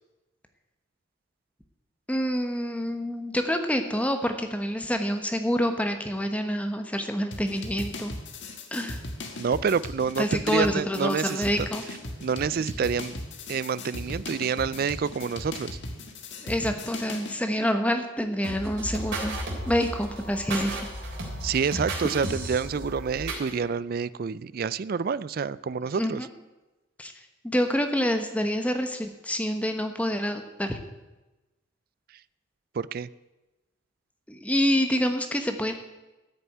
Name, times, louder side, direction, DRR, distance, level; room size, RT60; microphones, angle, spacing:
voice 1, 2.1-8.1 8.7-9.0 10.2-11.8 16.4-19.4 19.7-20.9 26.0-26.3 27.0-27.1 27.4-30.8 34.3-35.7, equal, 5° left, 6 dB, 1.1 m, -27 dB
sound 1, 7.3-17.4, left 2 dB, 60° left, 1.6 m, -38 dB
voice 2, 9.4-11.7 12.2-13.1 13.5-15.8 21.4-26.2 32.7-33.1, right 6 dB, 45° right, 18 dB, 0.3 m, -28 dB
sound 2, 18.4-23.5, right 1 dB, 60° right, 3.6 m, -34 dB
13.5 x 6.9 x 9.2 m, 1.1 s
head